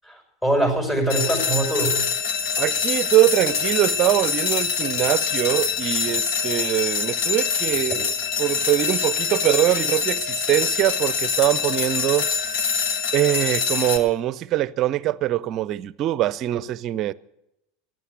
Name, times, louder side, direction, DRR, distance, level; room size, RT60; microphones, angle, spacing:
voice 1, 0.0-2.0, right 1 dB, 15° left, 5.9 m, -23 dB
sound 1, 1.1-14.0, left 6 dB, 60° left, 1.5 m, -24 dB
voice 2, 2.6-8.1 8.4-12.7 13.1-17.1, right 14 dB, 45° right, 0.6 m, -23 dB
15.0 x 10.5 x 8.3 m
figure-of-eight pair, 80°, 0 cm